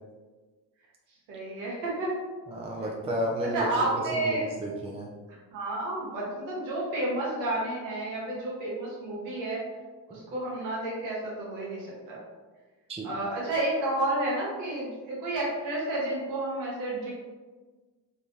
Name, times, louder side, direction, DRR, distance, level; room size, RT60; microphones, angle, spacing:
voice 1, 1.3-2.2 3.5-4.4 5.5-9.6 10.1-12.2 13.0-17.1, right 2 dB, 85° right, -5 dB, 1.1 m, -31 dB
voice 2, 2.5-3.7 3.9-5.1 12.9-13.1, equal, 15° right, -1 dB, 0.5 m, -32 dB
3.4 x 2.6 x 2.8 m, 1.3 s
hypercardioid pair, 45°, 48 cm